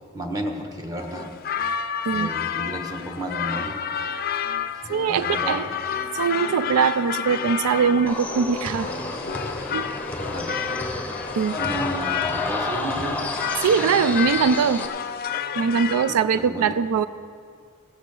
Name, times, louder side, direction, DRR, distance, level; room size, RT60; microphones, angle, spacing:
voice 1, 0.1-1.3 2.1-3.8 4.7-5.7 10.3-10.5 11.5-13.3 16.3-16.7, right 1 dB, 15° right, 2 dB, 1.2 m, -32 dB
sound 1, 1.0-16.2, left 8 dB, 45° left, 0.4 m, -30 dB
voice 2, 4.9-5.7 6.1-8.9 9.7-9.9 11.4-11.6 13.6-14.9 15.6-17.1, right 6 dB, 85° right, 14 dB, 0.3 m, -22 dB
sound 2, 8.1-14.9, left 2 dB, 5° left, 0.8 m, -30 dB
17.0 x 6.1 x 6.9 m, 2.2 s
head